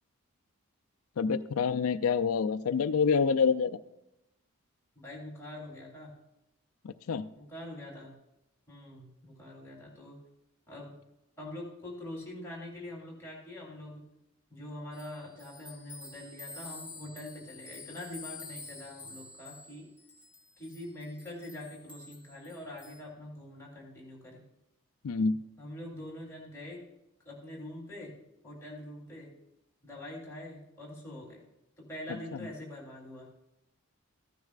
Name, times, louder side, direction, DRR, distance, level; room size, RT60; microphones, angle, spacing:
voice 1, 1.2-3.8 6.8-7.3 25.0-25.4, left 5 dB, 80° left, 12 dB, 0.4 m, -27 dB
voice 2, 4.9-6.1 7.3-8.1 8.7-10.2 10.7-10.9 11.4-14.1 14.5-19.9 20.6-24.4 25.6-26.9 27.2-29.4 29.8-31.4 31.8-33.3, left 1 dB, 15° left, -5 dB, 3.2 m, -44 dB
sound 1, 14.9-23.0, left 4 dB, 5° right, 1.4 m, -48 dB
15.0 x 9.5 x 2.4 m, 0.88 s
head